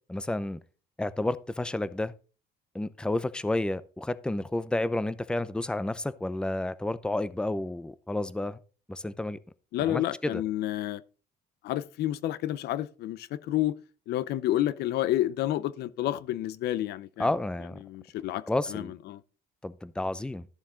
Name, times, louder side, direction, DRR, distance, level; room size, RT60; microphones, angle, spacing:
voice 1, 0.1-0.6 1.0-2.1 2.7-8.6 8.9-9.4 9.8-10.4 17.2-17.8 18.5-18.9 19.6-20.5, left 2 dB, 5° left, 0.6 m, -31 dB
voice 2, 9.7-11.0 11.6-13.8 14.1-17.3 17.8-18.4 18.7-19.2, left 13 dB, 75° left, 0.7 m, -30 dB
13.0 x 7.1 x 3.8 m
cardioid pair, 110°, 17 cm